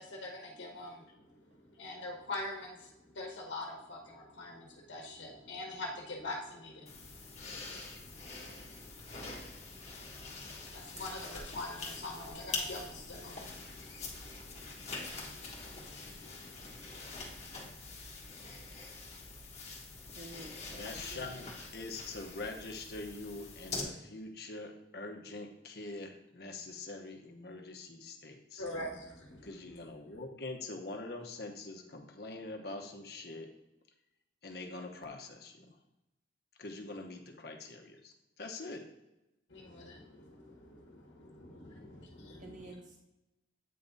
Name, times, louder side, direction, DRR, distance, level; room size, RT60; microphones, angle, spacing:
voice 1, 0.0-17.5 28.6-29.8 39.5-42.7, left 2 dB, 85° left, -1 dB, 1.2 m, -45 dB
sound 1, 6.9-23.8, left 3 dB, 35° left, 1.3 m, -45 dB
voice 2, 20.1-21.2 35.6-35.7 42.4-43.0, right 1 dB, 40° right, 0 dB, 0.7 m, -50 dB
voice 3, 20.8-28.7 29.4-33.5 34.4-35.7 36.6-38.8, left 2 dB, 55° left, 3 dB, 1.0 m, -44 dB
8.6 x 3.6 x 4.0 m, 0.93 s
head